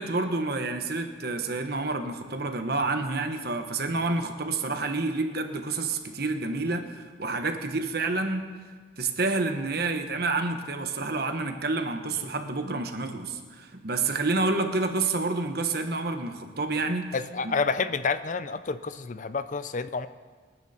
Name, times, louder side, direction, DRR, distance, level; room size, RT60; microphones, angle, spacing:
voice 1, 0.0-8.5 9.0-17.1 17.4-17.5, right 3 dB, 50° right, 6 dB, 1.3 m, -29 dB
voice 2, 17.1-20.1, left 4 dB, 40° left, 13 dB, 0.5 m, -29 dB
26.5 x 10.0 x 4.4 m, 1.5 s
head